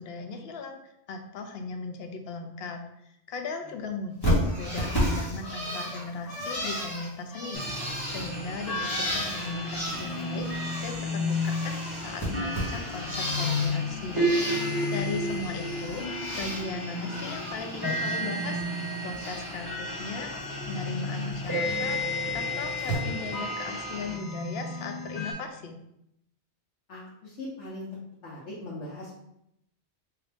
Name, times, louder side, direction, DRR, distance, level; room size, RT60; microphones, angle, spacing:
voice 1, 0.0-16.0 16.4-20.3 20.6-25.8, left 3 dB, 65° left, 5 dB, 0.8 m, -38 dB
Bird, 4.2-11.0 11.3-13.8 14.1-15.0 15.3-16.6 17.0-18.2 18.5-19.6 20.0-20.4 21.7-21.8 22.8-23.0, equal, 20° left, 1.4 m, -33 dB
sound 1, 7.5-25.3, left 1 dB, 20° right, 1.5 m, -32 dB
voice 2, 26.9-29.1, left 2 dB, 85° left, -7 dB, 1.2 m, -40 dB
3.8 x 2.8 x 3.3 m, 0.79 s
omnidirectional pair, 1.2 m